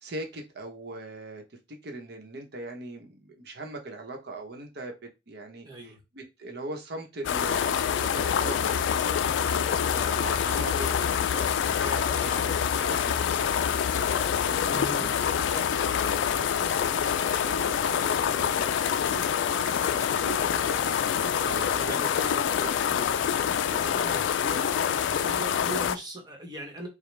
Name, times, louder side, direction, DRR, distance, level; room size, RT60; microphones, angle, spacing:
voice 1, 0.0-15.1 15.5-19.2 19.6-23.1 23.6-24.3, right 2 dB, 60° right, 1.0 m, -41 dB
voice 2, 5.6-6.0 9.6-11.1 14.7-15.1 21.7-22.2 23.9-24.7 25.1-26.9, equal, 20° right, 1.1 m, -40 dB
sound 1, 7.2-26.0, left 8 dB, 75° left, 0.3 m, -26 dB
4.9 x 2.2 x 3.3 m
head